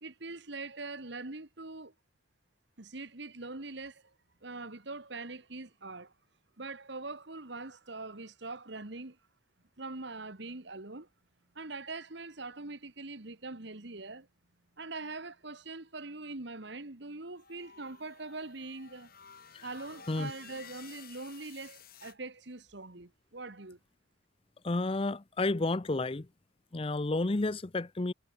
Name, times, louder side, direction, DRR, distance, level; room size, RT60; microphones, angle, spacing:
voice 1, 0.0-1.9 2.8-4.1 4.4-6.1 6.6-9.2 9.8-11.1 11.5-14.3 14.8-19.1 19.6-23.8, right 3 dB, 55° right, 1.6 m, -43 dB
sound 1, 17.4-22.1, left 7 dB, 45° left, 5.6 m, -53 dB
voice 2, 24.6-26.3 26.7-28.1, left 2 dB, 25° left, 0.6 m, -31 dB
head